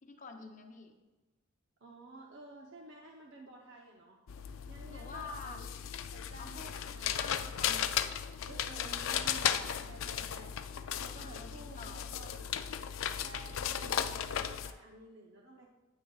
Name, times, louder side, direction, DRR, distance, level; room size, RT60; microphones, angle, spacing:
voice 1, 0.0-0.9 4.9-5.6 6.4-6.7 7.1-8.2 11.2-12.1, left 4 dB, 40° left, 4 dB, 0.7 m, -48 dB
voice 2, 1.8-4.2 4.7-5.7 6.1-7.4 8.5-10.5 11.0-12.4 13.2-15.7, right 2 dB, 60° right, -1 dB, 0.8 m, -52 dB
sound 1, 4.3-14.7, left 9 dB, 75° left, 0.4 m, -36 dB
9.6 x 8.9 x 2.4 m, 1.2 s
head